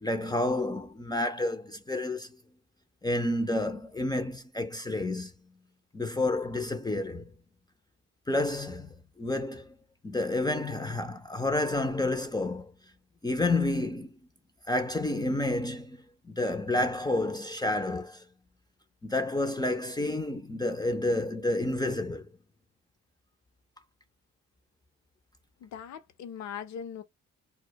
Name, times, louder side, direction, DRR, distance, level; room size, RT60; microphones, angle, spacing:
voice 1, 0.0-2.3 3.0-5.3 5.9-7.3 8.3-9.7 10.0-12.7 13.2-14.1 14.7-16.0 16.3-18.2 19.0-22.3, left 2 dB, 15° left, 0.5 m, -30 dB
voice 2, 25.6-27.0, left 8 dB, 65° left, 0.6 m, -40 dB
2.2 x 2.1 x 2.7 m
cardioid pair, 90°, 30 cm